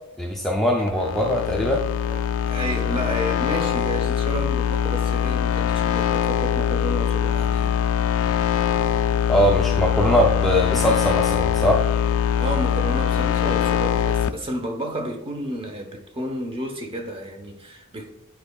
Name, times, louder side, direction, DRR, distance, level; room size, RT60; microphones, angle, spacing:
voice 1, 0.2-1.8 9.3-11.8, equal, ahead, 0.4 m, -21 dB
sound 1, 0.9-14.3, left 9 dB, 65° left, 0.3 m, -22 dB
voice 2, 2.1-7.8 12.4-18.1, right 1 dB, 25° right, 0.8 m, -31 dB
10.0 x 4.4 x 2.3 m
head